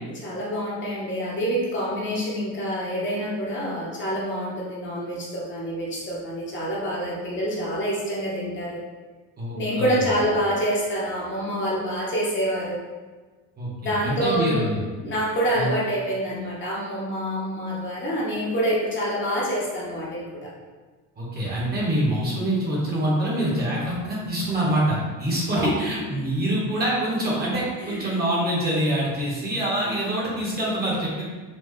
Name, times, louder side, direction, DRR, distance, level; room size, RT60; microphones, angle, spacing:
voice 1, 0.2-8.8 9.5-12.8 13.8-14.7 15.0-20.5 25.5-25.7 27.8-28.1, equal, 35° left, -5 dB, 0.9 m, -27 dB
voice 2, 9.4-10.0 13.6-14.8 15.5-15.7 21.2-31.2, right 1 dB, 30° right, -5 dB, 1.1 m, -25 dB
4.3 x 2.3 x 3.1 m, 1.3 s
cardioid pair, 140°, 33 cm